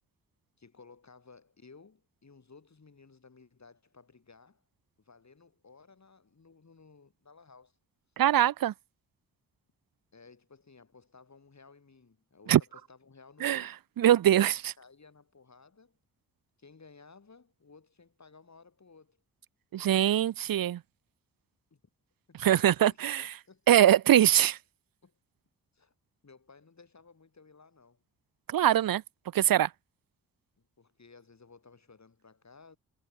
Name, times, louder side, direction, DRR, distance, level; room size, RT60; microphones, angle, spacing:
voice 1, 0.6-4.6 5.0-7.8 10.1-13.8 14.4-16.0 16.6-19.2 21.7-21.8 22.3-23.9 25.0-25.1 25.7-25.9 26.2-28.0 30.8-32.8, left 4 dB, 40° left, 7.3 m, -57 dB
voice 2, 8.2-8.7 12.5-12.6 13.4-13.6 14.0-14.7 19.7-20.8 22.4-23.2 23.7-24.6 28.5-29.0 29.3-29.7, right 11 dB, 60° right, 0.8 m, -22 dB
hypercardioid pair, 40°, 40 cm